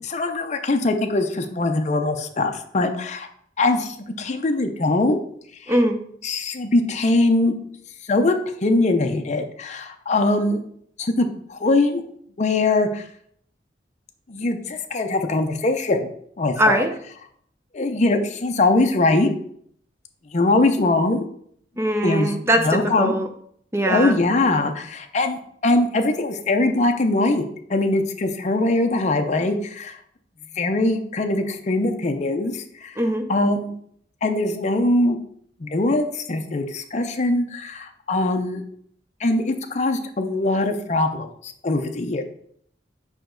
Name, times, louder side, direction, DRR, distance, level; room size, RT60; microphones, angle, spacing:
voice 1, 0.0-3.3 3.6-5.2 6.2-7.5 8.1-8.4 8.6-10.6 11.0-12.0 12.4-13.0 14.3-16.1 16.4-16.9 17.7-19.3 20.3-21.3 22.0-23.2 23.9-30.0 30.6-32.9 33.3-33.7 34.2-35.2 35.6-38.6 39.2-42.2, left 2 dB, 40° left, 5 dB, 0.6 m, -22 dB
voice 2, 5.7-6.0 16.6-16.9 21.8-23.3 23.7-24.2 33.0-33.3, right 1 dB, 15° right, 6 dB, 0.6 m, -21 dB
5.1 x 5.0 x 3.8 m, 0.65 s
head